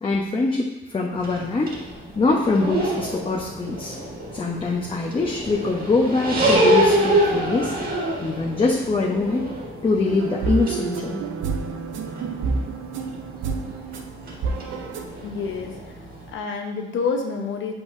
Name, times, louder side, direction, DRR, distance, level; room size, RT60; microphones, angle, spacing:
voice 1, 0.0-1.7 2.1-3.9 4.3-7.7 8.2-9.5 9.8-11.2, left 3 dB, 25° left, -2 dB, 0.8 m, -23 dB
sound 1, 1.1-16.3, right 1 dB, 50° right, 1.6 m, -27 dB
sound 2, 10.1-15.1, right 4 dB, 80° right, 0.7 m, -29 dB
voice 2, 15.2-16.0 16.3-17.7, left 5 dB, 75° left, 3 dB, 1.0 m, -28 dB
7.1 x 5.6 x 2.7 m, 1.1 s
cardioid pair, 90°, 20 cm